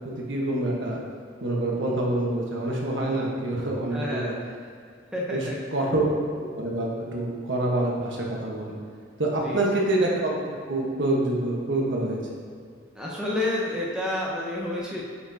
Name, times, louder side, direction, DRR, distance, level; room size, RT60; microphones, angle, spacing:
voice 1, 0.3-1.0 1.4-4.4 5.3-5.4 5.7-6.1 6.5-8.7 9.2-12.2, right 1 dB, 75° right, -3 dB, 1.2 m, -26 dB
voice 2, 3.9-4.7 5.1-5.6 9.4-9.9 12.9-15.0, left 1 dB, 5° right, -5 dB, 0.8 m, -30 dB
8.1 x 4.8 x 2.8 m, 2.2 s
head